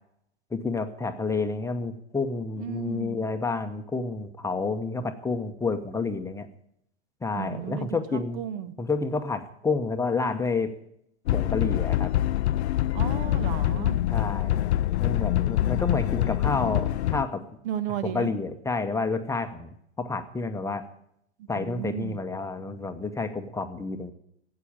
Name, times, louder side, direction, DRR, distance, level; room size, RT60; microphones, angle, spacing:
voice 1, 0.5-6.5 7.2-8.4 8.8-10.7 11.3-12.1 14.1-14.7 15.0-17.4 18.0-20.9 21.5-24.1, left 4 dB, 10° left, 6 dB, 0.9 m, -29 dB
voice 2, 2.6-3.3 7.3-8.7 12.9-14.0 17.6-18.3 21.6-22.2, right 10 dB, 55° right, 13 dB, 1.3 m, -34 dB
sound 1, 11.3-17.3, left 13 dB, 75° left, 0.5 m, -25 dB
12.5 x 8.5 x 8.8 m, 0.74 s
hypercardioid pair, 110°, 34 cm